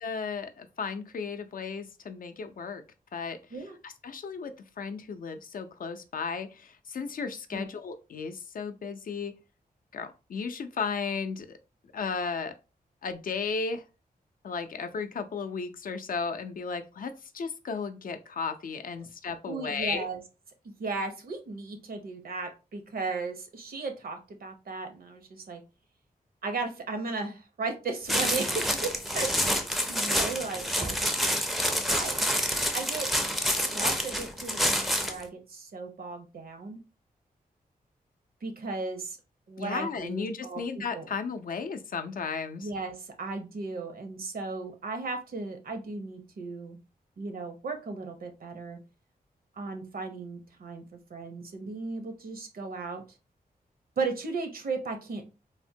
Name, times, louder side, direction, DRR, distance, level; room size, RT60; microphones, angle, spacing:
voice 1, 0.0-2.8 3.1-3.4 3.8-9.3 9.9-11.6 11.9-12.5 13.0-13.8 14.4-20.0 39.6-42.7, left 5 dB, 65° left, 8 dB, 0.4 m, -34 dB
voice 2, 19.5-20.2 20.6-25.6 26.4-29.6 29.9-31.0 31.9-32.2 32.7-33.1 33.6-36.8 38.4-39.2 39.5-41.1 42.6-46.8 47.2-48.8 49.6-53.0 54.0-55.2, right 3 dB, 70° right, 6 dB, 0.7 m, -36 dB
sound 1, 28.1-35.2, equal, ahead, 0.4 m, -28 dB
3.4 x 2.1 x 2.6 m, 0.30 s
wide cardioid pair, 105°, 16 cm